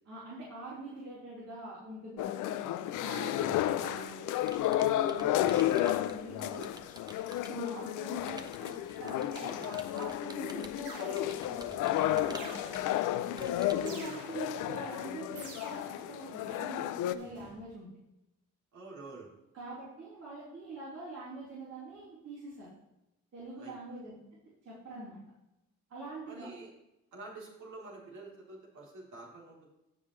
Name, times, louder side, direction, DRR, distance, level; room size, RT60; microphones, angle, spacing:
voice 1, 0.0-4.3 4.8-6.8 7.5-12.8 13.7-17.9 19.5-22.7 23.3-24.2 24.6-25.2 25.9-26.5, right 2 dB, 55° right, -9 dB, 4.0 m, -44 dB
sound 1, 2.2-17.2, left 13 dB, 90° left, 0.6 m, -32 dB
voice 2, 3.2-3.8 5.0-5.4 7.5-7.6 12.2-12.6 13.0-14.3 18.7-19.3 23.6-23.7 26.3-26.7 27.1-29.7, right 3 dB, 70° right, -3 dB, 3.6 m, -48 dB
sound 2, 3.8-4.5 5.3-5.9 6.8-7.4 9.4-10.1 10.9-11.6 12.4-13.1 13.9-14.7 15.4-16.2 17.2-17.6, right 2 dB, 85° right, 3.2 m, -50 dB
Computer keyboard, 4.1-7.7 8.3-14.0, right 2 dB, 15° right, 0.9 m, -51 dB
17.0 x 5.6 x 3.3 m, 0.89 s
cardioid pair, 90°, 30 cm